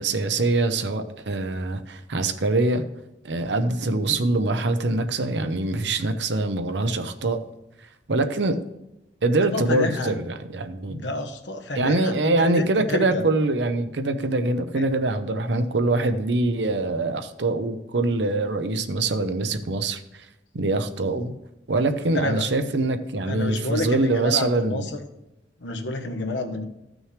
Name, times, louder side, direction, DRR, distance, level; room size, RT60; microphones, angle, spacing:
voice 1, 0.0-2.8 3.2-7.4 8.1-8.6 9.2-11.1 11.7-20.3 20.5-21.3 21.7-24.8, right 2 dB, 70° right, 8 dB, 0.7 m, -24 dB
voice 2, 9.5-10.1 10.9-13.2 14.8-14.9 22.1-22.4 23.2-24.9 25.6-26.6, left 2 dB, 85° left, 4 dB, 1.1 m, -29 dB
14.5 x 6.2 x 3.3 m, 0.94 s
head